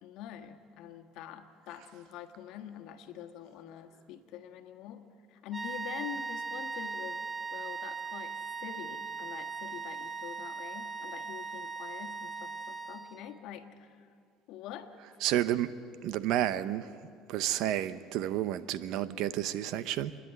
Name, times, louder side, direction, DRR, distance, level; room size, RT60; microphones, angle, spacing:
voice 1, 0.0-7.2 7.5-14.1 14.5-14.9, left 10 dB, 70° left, 6 dB, 1.5 m, -45 dB
sound 1, 5.5-13.4, right 4 dB, 15° right, 0.5 m, -39 dB
voice 2, 15.2-15.7 16.0-16.9 17.3-20.2, right 12 dB, 70° right, 14 dB, 0.7 m, -30 dB
28.0 x 10.5 x 9.2 m, 2.3 s
cardioid pair, 120°, 0 cm